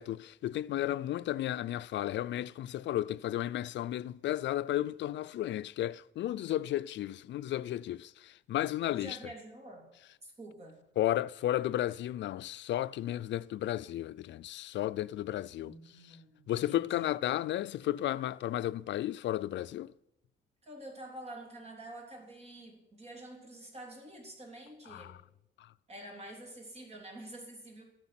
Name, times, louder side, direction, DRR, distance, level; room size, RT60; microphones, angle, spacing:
voice 1, 0.0-9.2 11.0-15.8 16.1-16.2 16.5-19.9 24.9-25.2 25.6-25.7, left 13 dB, 60° left, 0.4 m, -33 dB
voice 2, 8.9-9.9 10.2-10.8 15.6-17.2 20.6-25.1 25.9-27.8, right 1 dB, 30° right, 3.4 m, -48 dB
13.0 x 12.0 x 5.9 m
cardioid pair, 135°, 21 cm